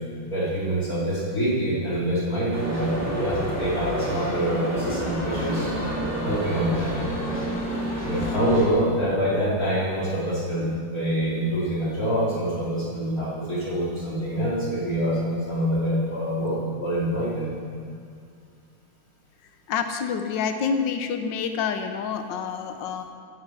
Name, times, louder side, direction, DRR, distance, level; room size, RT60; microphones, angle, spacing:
voice 1, 0.2-5.7 6.2-6.9 8.0-17.5, right 1 dB, 45° left, -7 dB, 3.6 m, -26 dB
sound 1, 2.5-8.7, equal, 5° right, 3.0 m, -28 dB
voice 2, 19.7-23.0, left 6 dB, 70° left, 7 dB, 1.5 m, -28 dB
10.5 x 10.5 x 7.9 m, 2.3 s
omnidirectional pair, 2.1 m